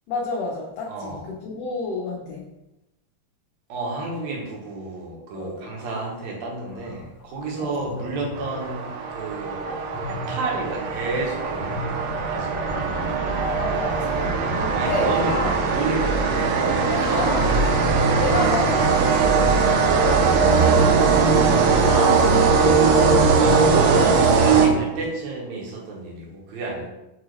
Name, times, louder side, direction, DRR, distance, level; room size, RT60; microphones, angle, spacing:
voice 1, 0.1-2.5 5.3-5.7 7.6-7.8 9.5-9.8 12.7-15.6 16.9-17.6 18.2-21.2 21.8-22.7, left 3 dB, 80° left, -2 dB, 1.4 m, -30 dB
voice 2, 0.9-1.2 3.7-8.9 9.1-9.6 10.1-11.8 12.3-12.7 14.7-15.4 15.7-16.3 23.4-26.9, right 2 dB, 70° right, -1 dB, 2.0 m, -30 dB
sound 1, 6.6-12.7, left 2 dB, 60° left, 1.2 m, -38 dB
sound 2, 8.4-25.2, right 4 dB, 90° right, 1.4 m, -20 dB
6.1 x 2.4 x 3.1 m, 0.94 s
omnidirectional pair, 3.5 m